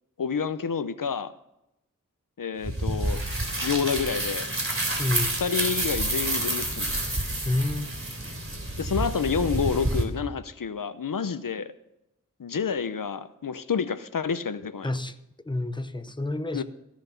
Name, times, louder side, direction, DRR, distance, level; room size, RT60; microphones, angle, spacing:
voice 1, 0.2-1.3 2.4-3.2 3.6-4.5 5.4-7.0 8.8-11.7 12.4-15.0 16.5-16.6, left 6 dB, 90° left, 13 dB, 0.7 m, -29 dB
sound 1, 2.6-10.0, right 1 dB, 40° right, 3.2 m, -29 dB
voice 2, 5.0-5.3 7.4-7.9 14.8-15.2 15.5-16.6, left 2 dB, 15° left, 10 dB, 0.9 m, -28 dB
15.5 x 7.3 x 5.7 m, 0.85 s
wide cardioid pair, 45°, 32 cm